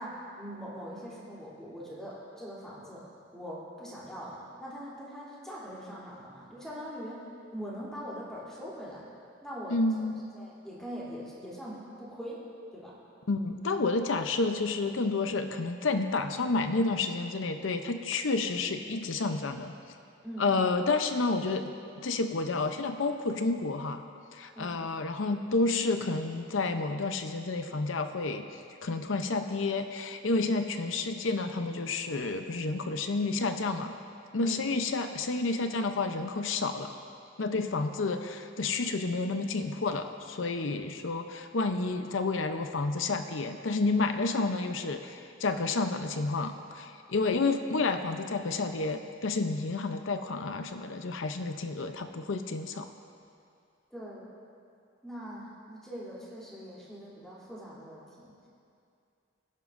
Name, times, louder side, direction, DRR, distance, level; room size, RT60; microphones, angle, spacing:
voice 1, 0.0-3.1 3.3-7.3 7.5-9.0 9.4-10.0 10.3-12.4 12.7-13.0 20.2-20.5 24.5-24.8 34.4-34.7 53.9-54.3 55.0-58.4, equal, 5° left, -8 dB, 3.2 m, -42 dB
voice 2, 9.7-10.2 13.3-19.7 20.4-24.0 24.3-28.5 28.8-33.9 34.3-36.9 37.4-52.9, left 3 dB, 85° left, 7 dB, 0.7 m, -30 dB
22.0 x 11.0 x 2.6 m, 2.5 s
head